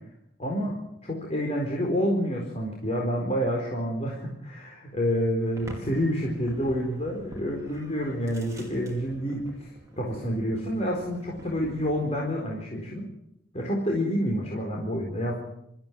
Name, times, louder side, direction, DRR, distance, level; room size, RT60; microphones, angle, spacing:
voice 1, 0.4-0.8 1.0-9.7 10.0-13.1 13.5-15.4, equal, 35° left, -2 dB, 4.4 m, -28 dB
sound 1, 5.5-12.2, right 1 dB, 15° right, 4.9 m, -46 dB
25.5 x 15.0 x 9.4 m, 0.79 s
head